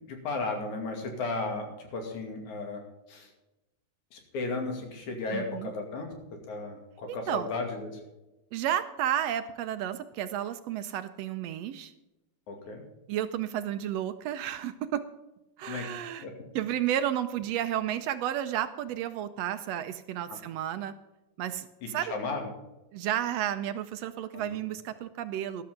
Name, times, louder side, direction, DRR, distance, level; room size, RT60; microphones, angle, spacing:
voice 1, 0.1-2.8 3.1-3.3 4.1-6.1 6.5-8.0 12.5-12.8 15.6-15.9 16.2-16.3 22.0-22.5 24.3-24.6, left 3 dB, 90° left, 3 dB, 3.8 m, -34 dB
voice 2, 5.3-5.7 7.1-7.5 8.5-11.9 13.1-15.0 15.6-16.3 16.6-20.9 21.4-22.1 22.9-25.6, right 11 dB, 75° right, 10 dB, 1.6 m, -32 dB
13.5 x 12.5 x 3.7 m, 1.0 s
omnidirectional pair, 3.3 m